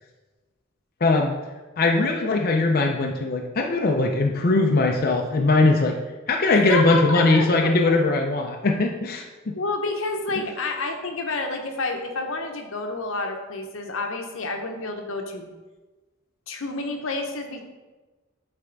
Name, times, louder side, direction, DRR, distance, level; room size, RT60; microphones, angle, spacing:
voice 1, 1.0-1.3 1.8-5.9 6.3-9.5 10.4-10.5, left 2 dB, 45° left, 1 dB, 0.5 m, -20 dB
voice 2, 6.5-7.9 9.6-15.5 16.5-17.6, left 3 dB, 80° left, 4 dB, 0.9 m, -29 dB
8.9 x 3.4 x 3.9 m, 1.2 s
head